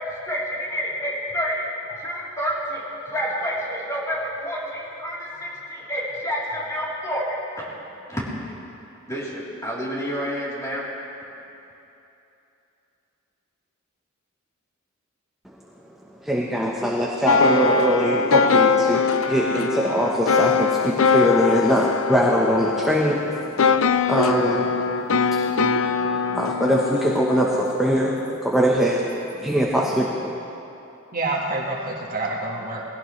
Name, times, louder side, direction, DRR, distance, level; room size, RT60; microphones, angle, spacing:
voice 1, 0.0-7.7 8.1-8.3 9.1-10.9, equal, 15° left, -7 dB, 3.5 m, -29 dB
voice 2, 16.2-24.7 25.2-30.1, equal, ahead, -3 dB, 1.0 m, -22 dB
sound 1, 17.3-28.4, left 5 dB, 85° left, 0.6 m, -22 dB
voice 3, 31.1-32.8, right 2 dB, 45° right, -1 dB, 1.6 m, -27 dB
20.0 x 16.5 x 3.2 m, 2.9 s
head